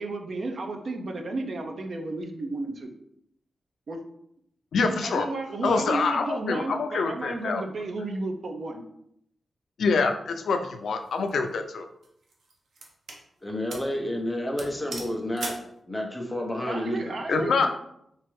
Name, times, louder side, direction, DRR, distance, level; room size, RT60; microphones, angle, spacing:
voice 1, 0.0-2.9 3.9-4.0 4.8-8.8 16.6-17.7, right 2 dB, 45° right, 4 dB, 0.5 m, -33 dB
voice 2, 4.7-5.3 5.6-7.6 9.8-11.8 17.3-17.7, left 4 dB, 75° left, 6 dB, 0.3 m, -25 dB
sound 1, 11.0-11.3 12.0-13.2 13.7-13.9 14.2-14.3 14.6-15.7, right 3 dB, 80° right, 0.7 m, -39 dB
voice 3, 13.4-15.6 15.9-17.7, left 1 dB, 5° left, 0 dB, 0.6 m, -30 dB
4.4 x 2.5 x 3.1 m, 0.74 s
wide cardioid pair, 165°, 0 cm